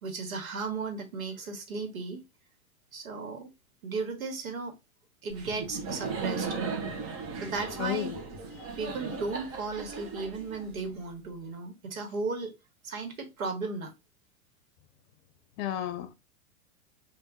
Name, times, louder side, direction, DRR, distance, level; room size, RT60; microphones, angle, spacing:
voice 1, 0.0-2.2 2.9-3.5 3.8-4.8 5.2-6.5 7.4-8.1 8.8-12.5 12.8-13.9, right 4 dB, 80° right, 1.5 m, -35 dB
Laughter, 5.3-11.1, right 4 dB, 35° right, 1.0 m, -37 dB
voice 2, 7.8-8.1 15.6-16.1, left 11 dB, 50° left, 0.7 m, -32 dB
3.5 x 2.7 x 3.9 m
hypercardioid pair, 115°, 41 cm